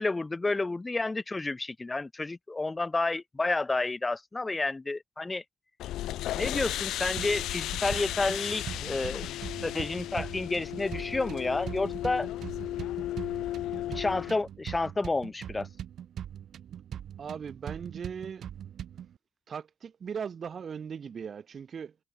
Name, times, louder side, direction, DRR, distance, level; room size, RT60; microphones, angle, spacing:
voice 1, 0.0-5.4 6.3-9.3 9.6-12.3 13.9-15.7, left 3 dB, 20° left, 0.8 m, -30 dB
sound 1, 5.8-14.3, left 14 dB, 85° left, 0.3 m, -35 dB
sound 2, 7.2-19.2, right 9 dB, 65° right, 2.0 m, -42 dB
voice 2, 17.2-18.5 19.5-22.0, right 7 dB, 50° right, 2.6 m, -38 dB
cardioid pair, 90°, 0 cm